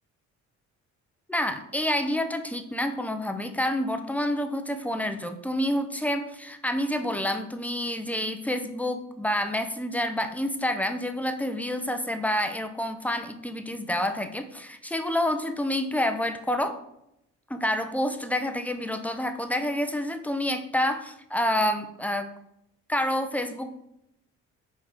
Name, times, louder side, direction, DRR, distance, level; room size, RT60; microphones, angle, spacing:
voice 1, 1.3-16.8 17.5-22.3 22.9-23.8, left 1 dB, 5° left, 7 dB, 0.7 m, -28 dB
5.2 x 4.5 x 5.1 m, 0.81 s
cardioid pair, 90°, 30 cm